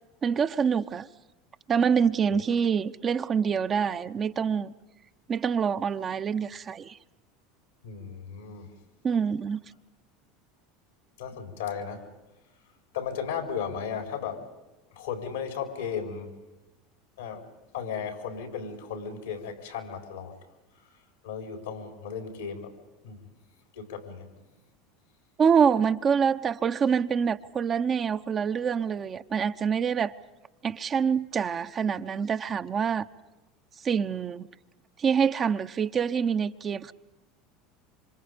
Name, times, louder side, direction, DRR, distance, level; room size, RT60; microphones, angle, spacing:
voice 1, 0.2-1.1 1.7-4.7 5.3-7.0 9.0-9.6 25.4-30.1 30.6-33.0 33.8-34.5 35.0-36.9, right 6 dB, 35° right, 0.9 m, -26 dB
voice 2, 7.8-8.7 11.2-12.1 12.9-14.4 14.9-16.3 17.2-17.5 17.7-20.3 21.2-22.7 23.0-23.2 23.7-24.3, left 7 dB, 85° left, 4.1 m, -35 dB
27.5 x 26.0 x 5.2 m
hypercardioid pair, 85°, 0 cm